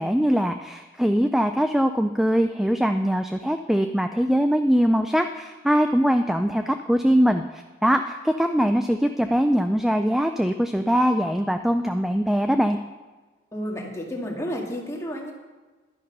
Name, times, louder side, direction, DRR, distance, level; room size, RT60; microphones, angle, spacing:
voice 1, 0.0-12.8, equal, ahead, 7 dB, 0.3 m, -22 dB
voice 2, 13.5-15.3, equal, 15° left, -1 dB, 2.1 m, -31 dB
12.0 x 10.5 x 5.5 m, 1.3 s
head